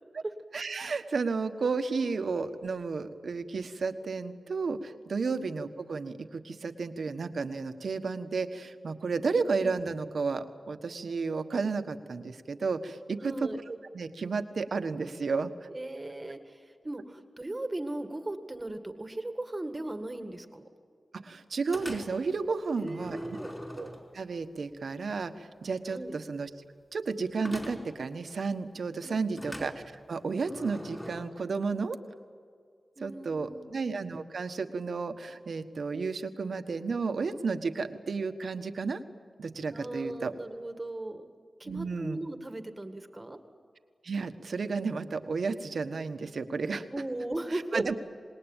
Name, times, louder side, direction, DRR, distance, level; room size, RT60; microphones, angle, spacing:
voice 1, 0.5-15.7 21.2-23.2 23.8-26.5 26.9-29.7 30.1-32.0 33.0-39.0 39.4-40.3 41.6-42.2 44.0-46.9 47.5-47.9, right 4 dB, 75° right, 9 dB, 1.4 m, -32 dB
voice 2, 13.2-13.6 15.7-20.6 22.8-23.5 25.9-26.1 29.0-29.4 33.0-33.8 39.7-41.3 41.6-43.4 46.9-47.9, right 1 dB, 20° right, 8 dB, 1.9 m, -37 dB
sound 1, 21.7-22.3 22.9-24.4 27.4-28.0 29.4-31.2, equal, 10° left, 4.5 m, -42 dB
27.0 x 20.0 x 9.1 m, 2.2 s
wide cardioid pair, 95°, 0 cm